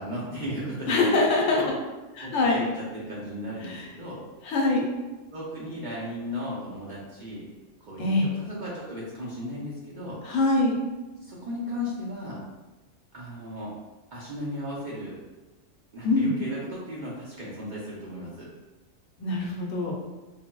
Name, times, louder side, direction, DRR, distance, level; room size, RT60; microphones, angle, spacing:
voice 1, 0.0-1.7 2.2-4.2 5.3-7.5 7.8-10.2 11.2-12.4 13.1-13.7 14.1-15.2 15.9-18.5, left 1 dB, 50° right, -7 dB, 0.6 m, -36 dB
voice 2, 0.9-1.6 2.2-2.6 3.6-3.8 4.4-4.9 8.0-8.3 10.2-10.8 16.0-16.3 19.2-19.9, left 2 dB, 70° left, -1 dB, 0.9 m, -23 dB
3.9 x 2.0 x 2.2 m, 1.1 s
omnidirectional pair, 1.3 m